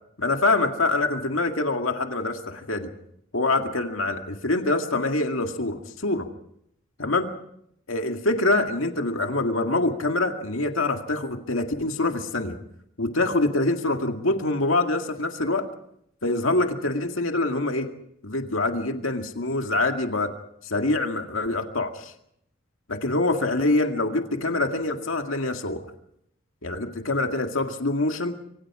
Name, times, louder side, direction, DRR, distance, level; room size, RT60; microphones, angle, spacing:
voice 1, 0.2-2.9 3.3-6.3 7.0-7.3 7.9-12.6 13.0-15.6 16.2-17.9 18.2-20.3 20.6-22.1 22.9-25.8 26.6-28.3, left 2 dB, 85° left, 4 dB, 2.1 m, -25 dB
27.5 x 24.5 x 4.9 m, 0.73 s
head